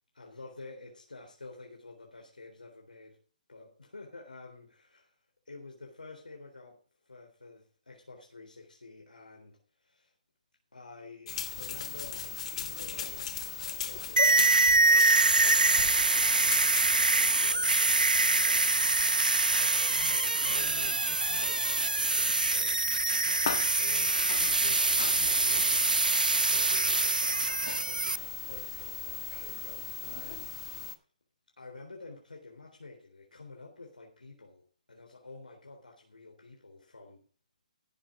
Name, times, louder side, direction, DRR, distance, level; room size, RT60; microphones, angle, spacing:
voice 1, 0.1-3.2 3.5-5.2 5.5-6.8 7.1-10.1 10.7-16.6 17.1-19.1 19.5-22.8 23.1-30.5 31.6-37.2, left 3 dB, 85° left, 3.7 m, -49 dB
sound 1, 11.3-31.0, left 8 dB, 50° left, 1.5 m, -38 dB
sound 2, 14.2-28.2, right 3 dB, 90° right, 0.5 m, -25 dB
17.0 x 7.4 x 4.9 m
figure-of-eight pair, 140°, 4 cm